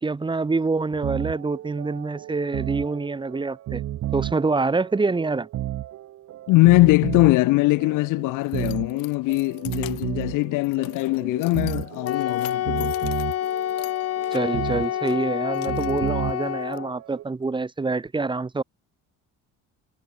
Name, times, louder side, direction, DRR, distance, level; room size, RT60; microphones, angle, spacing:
voice 1, 0.0-3.8 4.1-5.5 14.3-18.6, right 3 dB, 15° right, 1.1 m, -26 dB
sound 1, 0.9-17.2, right 13 dB, 50° right, 0.9 m, -33 dB
voice 2, 6.5-13.1, left 22 dB, 70° left, 0.5 m, -21 dB
Keys jangling, 7.8-16.8, left 22 dB, 85° left, 5.3 m, -46 dB
Wind instrument woodwind instrument, 12.0-16.9, left 12 dB, 45° left, 1.0 m, -27 dB
cardioid pair, 120°, 33 cm